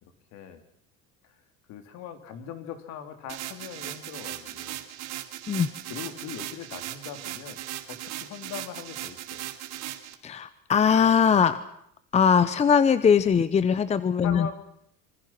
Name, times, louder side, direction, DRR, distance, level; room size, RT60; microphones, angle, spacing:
voice 1, 0.0-0.6 1.7-4.8 5.9-7.6 7.9-9.5 14.2-14.5, left 8 dB, 60° left, 8 dB, 3.7 m, -40 dB
sound 1, 3.3-10.1, right 14 dB, 60° right, 2.6 m, -38 dB
voice 2, 10.2-11.6 12.1-14.5, left 7 dB, 20° left, 14 dB, 0.9 m, -21 dB
26.0 x 25.0 x 6.1 m, 0.72 s
cardioid pair, 145°, 30 cm